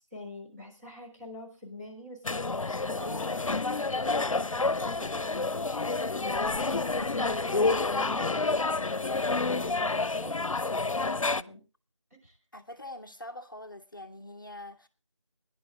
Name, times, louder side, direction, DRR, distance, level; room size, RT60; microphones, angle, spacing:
voice 1, 0.1-11.6 12.2-12.3, left 1 dB, 30° right, 4.1 m, -44 dB
sound 1, 2.2-11.4, left 3 dB, 90° left, 0.6 m, -29 dB
voice 2, 7.5-8.2 12.5-14.9, left 1 dB, 40° left, 0.7 m, -44 dB
18.5 x 10.5 x 3.6 m
figure-of-eight pair, 175°, 17 cm